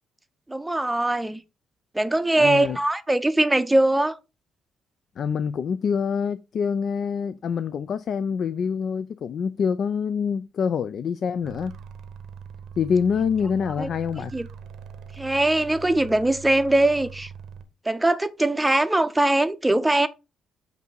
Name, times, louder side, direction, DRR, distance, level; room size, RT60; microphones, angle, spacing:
voice 1, 0.5-1.4 1.9-4.2 13.8-13.9 14.3-14.5 15.2-17.3 17.9-20.1, right 1 dB, 10° right, 0.6 m, -21 dB
voice 2, 2.4-2.8 5.2-11.8 12.8-14.3, left 6 dB, 60° left, 0.3 m, -26 dB
sound 1, 11.4-17.7, right 7 dB, 80° right, 0.8 m, -42 dB
8.1 x 2.7 x 4.5 m
cardioid pair, 90°, 0 cm